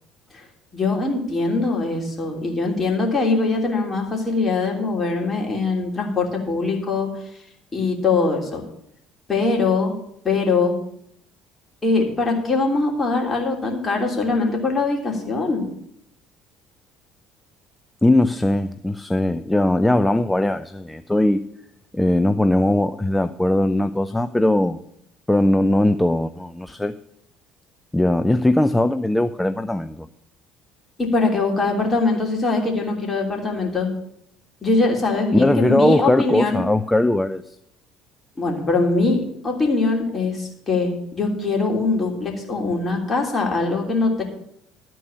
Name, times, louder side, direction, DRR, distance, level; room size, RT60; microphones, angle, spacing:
voice 1, 0.7-7.1 7.7-8.6 9.3-9.9 10.2-10.8 11.8-15.7 31.0-33.9 34.6-36.6 38.4-44.2, left 3 dB, 30° left, 1 dB, 3.2 m, -22 dB
voice 2, 18.0-21.4 21.9-24.8 25.3-27.0 27.9-30.1 35.3-37.6, left 1 dB, 10° left, 11 dB, 0.5 m, -19 dB
12.5 x 4.6 x 8.5 m, 0.75 s
hypercardioid pair, 60°, 0 cm